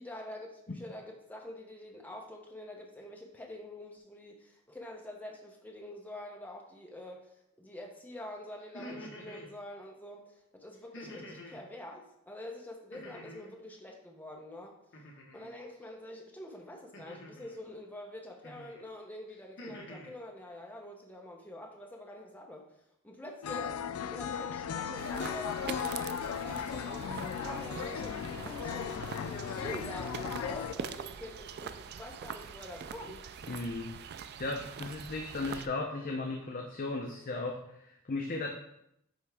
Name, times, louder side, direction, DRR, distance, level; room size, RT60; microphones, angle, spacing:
voice 1, 0.0-14.8 15.3-22.6 23.0-23.8 24.1-33.3, left 1 dB, 10° left, 0 dB, 0.9 m, -46 dB
sound 1, 8.6-9.5 10.9-11.6 12.9-13.6 14.9-15.5 16.9-17.6 18.4-18.8 19.3-20.1, left 1 dB, 55° left, 1.1 m, -47 dB
sound 2, 23.4-30.7, left 7 dB, 85° left, 0.4 m, -36 dB
sound 3, 25.0-35.7, right 7 dB, 50° right, 0.3 m, -43 dB
voice 2, 33.5-33.9 34.4-38.5, left 3 dB, 40° left, 2 dB, 0.6 m, -36 dB
9.4 x 3.5 x 3.4 m, 0.79 s
head